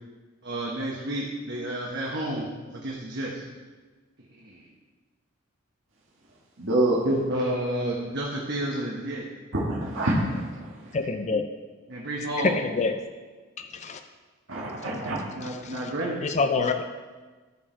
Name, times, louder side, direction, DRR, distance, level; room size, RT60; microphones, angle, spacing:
voice 1, 0.4-3.4 4.3-4.6 7.0-9.3 11.9-12.6 14.9-16.2, right 1 dB, 60° right, -3 dB, 1.2 m, -31 dB
voice 2, 6.6-7.0 9.5-10.7 14.5-15.2, right 1 dB, 75° right, -5 dB, 1.6 m, -26 dB
voice 3, 10.9-11.5 12.4-13.0 13.6-14.0 15.4-15.9 16.2-16.8, left 4 dB, 35° left, 7 dB, 0.4 m, -27 dB
13.0 x 4.7 x 4.5 m, 1.3 s
head